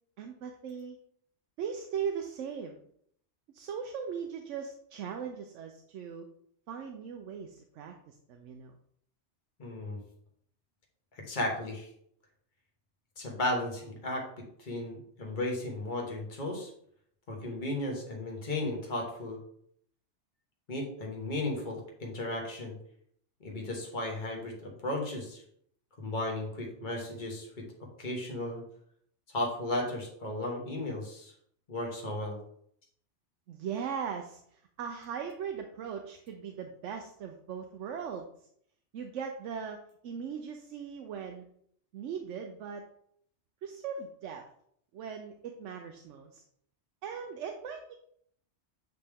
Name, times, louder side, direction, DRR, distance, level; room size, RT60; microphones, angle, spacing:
voice 1, 0.2-1.0 1.6-2.8 3.5-6.3 6.7-8.7 33.5-38.3 38.9-41.5 41.9-42.8 43.6-44.4 44.9-46.4 47.0-47.9, right 7 dB, 85° right, 4 dB, 0.9 m, -39 dB
voice 2, 9.6-10.0 11.1-11.9 13.2-16.7 17.3-19.4 20.7-22.7 23.4-25.4 26.0-27.6 28.0-28.6 29.3-31.3 31.7-32.4, left 1 dB, 40° left, -1 dB, 1.5 m, -35 dB
8.0 x 3.4 x 3.5 m, 0.67 s
omnidirectional pair, 1.2 m